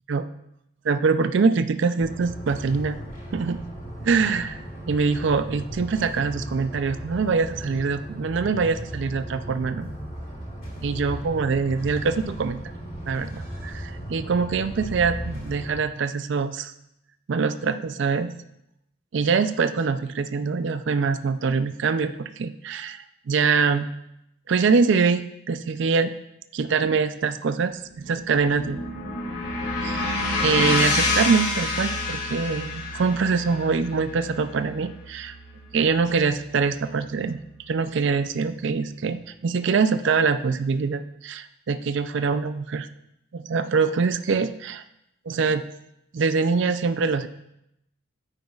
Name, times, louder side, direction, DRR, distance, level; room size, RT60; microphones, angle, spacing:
voice 1, 0.8-3.0 3.3-3.6 4.0-4.6 4.9-9.9 10.8-12.7 13.1-16.7 17.3-18.3 19.1-23.9 24.5-26.1 26.5-28.8 29.8-30.0 30.4-35.4 35.7-37.4 37.7-42.9 43.3-44.8 45.3-45.6 46.1-47.3, right 5 dB, 60° right, 10 dB, 0.4 m, -24 dB
sound 1, 2.0-15.7, equal, 40° left, 2.8 m, -36 dB
sound 2, 27.9-36.2, left 2 dB, 75° left, 2.2 m, -28 dB
9.2 x 9.0 x 2.4 m, 0.82 s
head